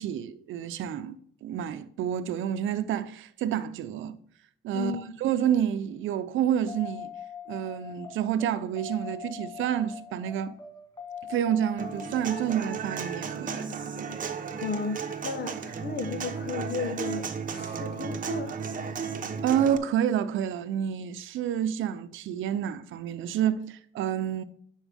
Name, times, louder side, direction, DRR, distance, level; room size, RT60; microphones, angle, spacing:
voice 1, 0.0-4.2 4.6-7.1 7.5-10.6 11.3-13.7 19.4-24.4, right 9 dB, 80° right, 0.7 m, -29 dB
voice 2, 4.7-5.1 14.6-15.0 15.2-18.5, left 4 dB, 55° left, 1.2 m, -34 dB
sound 1, 6.7-15.1 17.7-17.8, left 7 dB, 20° left, 1.4 m, -43 dB
Human voice / Acoustic guitar, 11.8-19.8, right 6 dB, 40° right, 1.0 m, -34 dB
10.0 x 4.7 x 3.5 m
cardioid pair, 90°, 20 cm